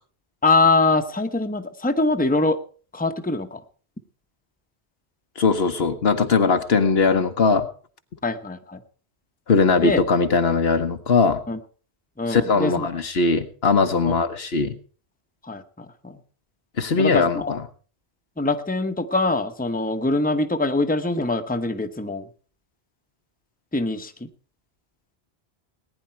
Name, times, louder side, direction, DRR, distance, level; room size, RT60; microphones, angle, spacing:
voice 1, 0.4-2.6 2.9-3.6 8.2-8.8 9.8-10.0 11.5-11.6 12.2-12.9 14.0-14.1 15.4-16.2 17.0-17.6 18.4-22.2 23.7-24.3, left 3 dB, 10° left, 6 dB, 0.9 m, -23 dB
voice 2, 5.4-7.7 9.5-11.4 12.3-14.8 16.8-17.4, left 4 dB, 70° left, 7 dB, 1.4 m, -20 dB
19.0 x 10.0 x 4.5 m, 0.40 s
omnidirectional pair, 1.1 m